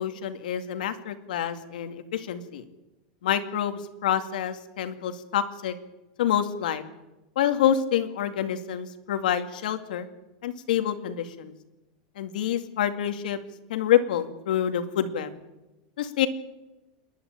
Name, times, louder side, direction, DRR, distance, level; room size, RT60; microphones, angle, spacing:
voice 1, 0.0-2.6 3.2-5.7 6.2-6.8 7.4-10.1 10.4-11.5 12.2-13.4 13.7-15.3 16.0-16.3, left 10 dB, 90° left, 8 dB, 2.2 m, -27 dB
28.0 x 11.0 x 8.9 m, 1.0 s
supercardioid pair, 155°, 4 cm